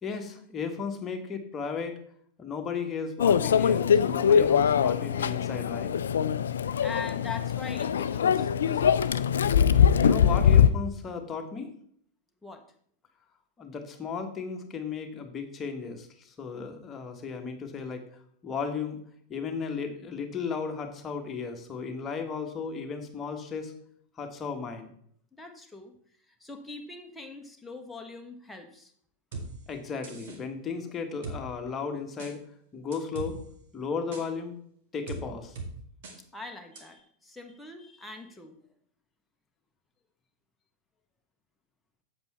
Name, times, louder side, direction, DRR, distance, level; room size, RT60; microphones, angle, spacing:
voice 1, 0.0-2.0 2.4-5.9 10.0-11.7 13.6-18.0 18.4-19.0 19.3-23.7 24.2-24.9 29.7-32.4 32.7-33.4 33.7-34.6 34.9-35.6, left 5 dB, 25° left, 4 dB, 1.5 m, -35 dB
Microwave oven, 3.2-10.7, left 8 dB, 65° left, 0.4 m, -22 dB
voice 2, 6.5-9.1 12.4-12.6 25.4-25.9 26.3-28.9 36.3-38.6, left 4 dB, 5° left, 3 dB, 1.3 m, -42 dB
sound 1, 29.3-29.5 30.0-30.4 31.2-31.4 32.2-32.3 32.9-33.3 34.1-34.2 35.1-35.2 35.6-35.7 36.0-36.2 36.8-36.9, right 3 dB, 55° right, 2.1 m, -38 dB
8.0 x 7.8 x 4.3 m, 0.64 s
figure-of-eight pair, 90°, 0 cm